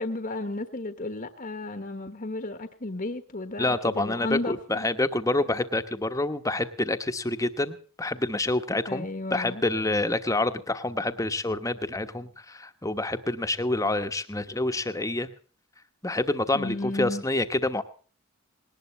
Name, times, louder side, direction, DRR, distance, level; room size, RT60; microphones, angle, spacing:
voice 1, 0.0-4.9 8.9-9.6 16.5-17.2, left 2 dB, 40° left, 9 dB, 1.2 m, -33 dB
voice 2, 3.6-15.3 16.0-17.8, left 2 dB, 15° left, 8 dB, 1.1 m, -27 dB
20.0 x 19.0 x 3.2 m, 0.40 s
head